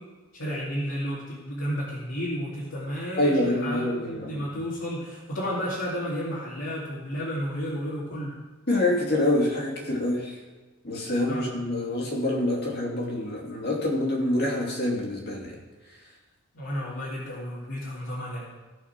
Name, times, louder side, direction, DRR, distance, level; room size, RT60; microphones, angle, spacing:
voice 1, 0.3-8.4 11.3-11.6 16.5-18.4, equal, 65° left, -8 dB, 2.6 m, -32 dB
voice 2, 3.2-4.4 8.7-10.3 10.8-15.5, left 1 dB, 50° left, -2 dB, 2.7 m, -26 dB
16.5 x 5.7 x 5.9 m, 1.2 s
head